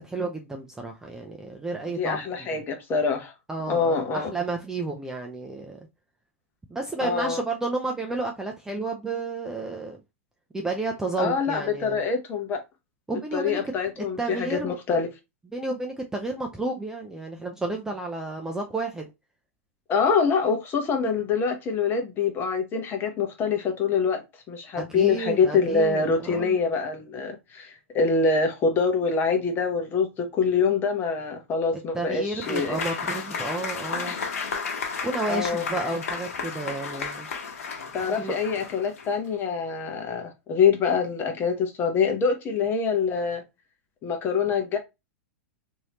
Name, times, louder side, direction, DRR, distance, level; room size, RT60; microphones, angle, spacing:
voice 1, 0.0-2.6 3.5-5.9 6.7-10.0 10.5-12.0 13.1-14.8 15.5-19.1 24.8-26.6 31.9-34.1 35.0-37.3 38.1-38.3, right 2 dB, 5° right, 0.5 m, -31 dB
voice 2, 1.9-3.3 3.7-4.3 7.0-7.4 11.2-12.6 13.3-15.1 19.9-24.2 24.5-32.8 35.3-35.6 37.9-43.4 44.0-44.8, left 5 dB, 30° left, 0.9 m, -25 dB
Applause / Crowd, 32.4-39.2, left 5 dB, 80° left, 1.1 m, -33 dB
3.1 x 2.8 x 2.9 m
hypercardioid pair, 130°, 8 cm